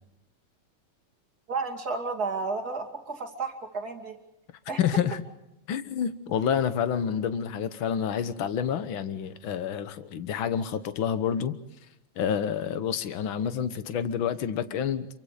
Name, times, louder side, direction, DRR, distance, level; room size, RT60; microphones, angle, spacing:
voice 1, 1.5-4.2 4.7-4.8, right 4 dB, 35° right, 3 dB, 2.9 m, -32 dB
voice 2, 4.8-5.2 5.7-11.6 12.1-15.1, left 8 dB, 55° left, 11 dB, 1.6 m, -28 dB
28.0 x 24.0 x 5.0 m, 0.88 s
omnidirectional pair, 3.3 m